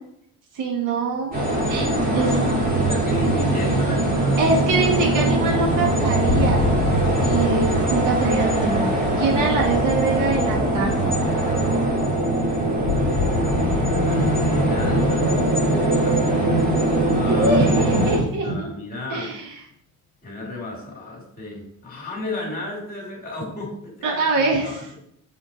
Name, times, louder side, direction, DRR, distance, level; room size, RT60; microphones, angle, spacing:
voice 1, 0.5-1.3 1.7-1.9 2.1-2.4 4.4-6.6 7.2-8.9 9.2-11.2 17.2-18.7 19.1-19.5 24.0-24.8, right 3 dB, 60° right, -1 dB, 1.5 m, -23 dB
sound 1, 1.3-18.2, right 2 dB, 25° right, 1.7 m, -21 dB
voice 2, 2.1-2.6 2.9-4.7 14.0-16.6 17.1-19.3 20.2-25.0, left 2 dB, 25° left, -1 dB, 2.3 m, -34 dB
sound 2, 6.2-11.2 12.8-18.5, left 6 dB, 70° left, 0.8 m, -29 dB
7.3 x 3.7 x 4.0 m, 0.72 s
cardioid pair, 140°, 35 cm